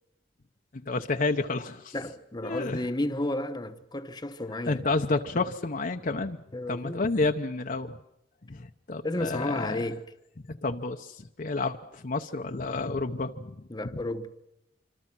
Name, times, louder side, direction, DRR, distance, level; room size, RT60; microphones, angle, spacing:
voice 1, 0.7-1.9 2.4-2.8 4.7-6.4 6.7-8.0 8.5-9.8 10.5-13.6 13.9-14.0, left 3 dB, 50° left, 0.8 m, -30 dB
voice 2, 1.9-4.8 6.5-7.0 9.0-10.0 13.7-14.3, left 1 dB, 25° left, 1.1 m, -32 dB
26.0 x 26.0 x 6.0 m
head